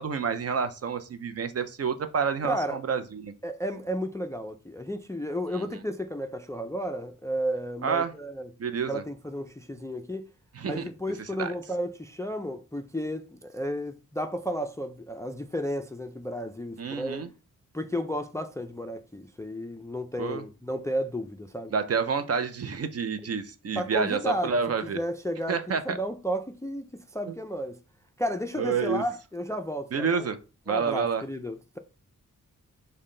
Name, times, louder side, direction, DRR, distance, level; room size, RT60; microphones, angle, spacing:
voice 1, 0.0-3.3 5.5-5.6 7.8-8.1 8.6-9.0 10.5-10.9 11.4-11.5 16.8-17.3 20.2-20.4 21.7-25.0 25.5-26.0 27.3-27.4 28.6-29.0 29.9-30.4 30.7-31.2, right 6 dB, 50° right, 0.5 m, -29 dB
voice 2, 2.4-2.8 3.4-8.5 8.9-10.3 10.7-17.3 17.7-21.7 23.8-24.5 24.9-27.8 28.2-30.3 30.7-31.8, equal, 10° left, 0.3 m, -33 dB
5.5 x 2.2 x 3.8 m
wide cardioid pair, 125°, 33 cm